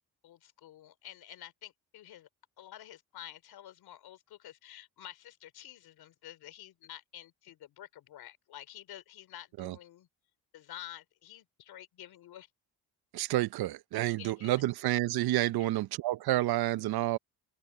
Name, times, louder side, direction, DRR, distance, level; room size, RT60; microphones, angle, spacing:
voice 1, 0.2-2.3 2.6-10.1 10.5-12.5 14.2-14.6, left 12 dB, 75° left, 3.3 m, -50 dB
voice 2, 13.1-17.2, right 15 dB, 80° right, 0.8 m, -29 dB
cardioid pair, 90°, 37 cm